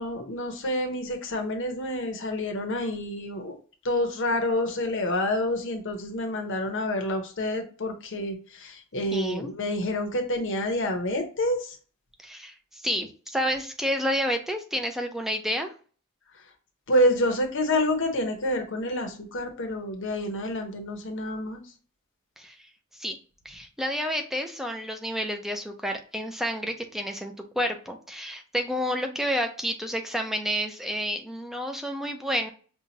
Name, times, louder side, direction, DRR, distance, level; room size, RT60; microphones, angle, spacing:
voice 1, 0.0-3.6 3.8-11.8 16.9-21.6, left 1 dB, 60° left, 4 dB, 1.0 m, -28 dB
voice 2, 9.1-9.5 12.2-15.7 22.4-22.6 23.0-23.2 23.4-32.5, equal, ahead, 4 dB, 0.6 m, -30 dB
5.6 x 2.4 x 2.8 m, 0.39 s
head